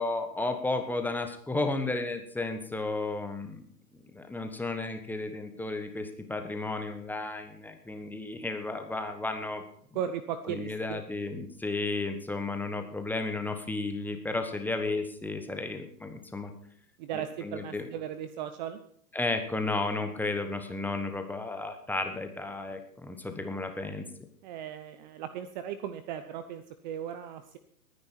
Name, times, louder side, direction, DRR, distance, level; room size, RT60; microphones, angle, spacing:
voice 1, 0.0-3.6 3.9-9.6 10.5-16.5 17.1-17.9 19.1-24.1, left 2 dB, 5° left, 6 dB, 1.1 m, -33 dB
voice 2, 9.9-11.0 17.0-18.8 24.4-27.6, right 9 dB, 30° right, 11 dB, 0.7 m, -37 dB
20.0 x 9.7 x 4.5 m, 0.62 s
figure-of-eight pair, 115°, 48 cm